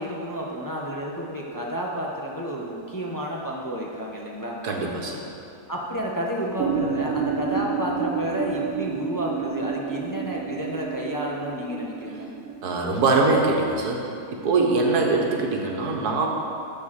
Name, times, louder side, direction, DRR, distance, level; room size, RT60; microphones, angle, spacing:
voice 1, 0.0-4.6 5.7-12.3, equal, 15° left, -3 dB, 0.9 m, -30 dB
voice 2, 4.6-5.3 12.6-16.3, right 3 dB, 85° right, 0 dB, 1.8 m, -23 dB
sound 1, 6.6-12.8, right 6 dB, 45° right, 1.1 m, -30 dB
12.5 x 4.8 x 7.5 m, 2.6 s
omnidirectional pair, 1.6 m